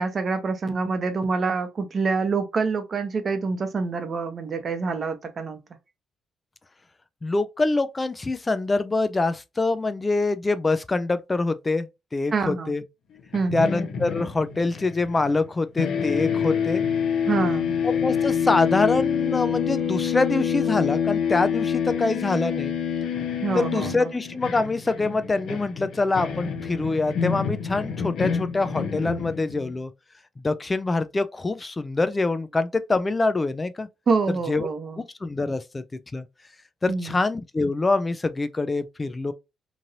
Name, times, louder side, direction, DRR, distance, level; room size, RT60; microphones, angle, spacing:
voice 1, 0.0-5.6 12.3-12.7 13.3-13.7 17.3-17.8 23.4-24.1 34.1-35.0 36.9-37.2, right 4 dB, 45° right, 0.8 m, -26 dB
voice 2, 7.2-11.9 12.1-12.8 13.5-16.8 17.8-22.8 23.5-29.9 30.4-33.9 34.5-34.7 35.0-35.8 36.1-36.2 36.8-39.3, left 3 dB, 25° left, 0.3 m, -25 dB
sound 1, 13.3-15.5 15.8-29.8, left 7 dB, 75° left, 0.6 m, -27 dB
3.0 x 2.6 x 2.7 m
cardioid pair, 90°, 0 cm